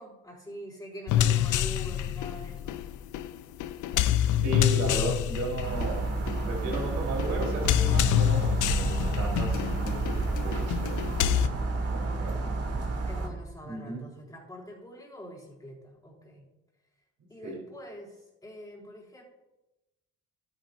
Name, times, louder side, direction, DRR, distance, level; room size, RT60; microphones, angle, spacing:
voice 1, 0.0-2.8 12.0-12.5 13.0-16.4 17.3-19.2, left 1 dB, 10° left, -10 dB, 4.1 m, -45 dB
sound 1, 1.1-11.5, left 11 dB, 80° left, 0.6 m, -27 dB
voice 2, 4.4-6.1 6.4-11.2 11.9-12.4 13.6-14.0 17.4-17.6, right 2 dB, 70° right, -2 dB, 4.1 m, -35 dB
sound 2, 5.6-13.3, right 3 dB, 55° right, 2.5 m, -30 dB
13.0 x 10.0 x 2.7 m, 0.98 s
cardioid pair, 90°, 30 cm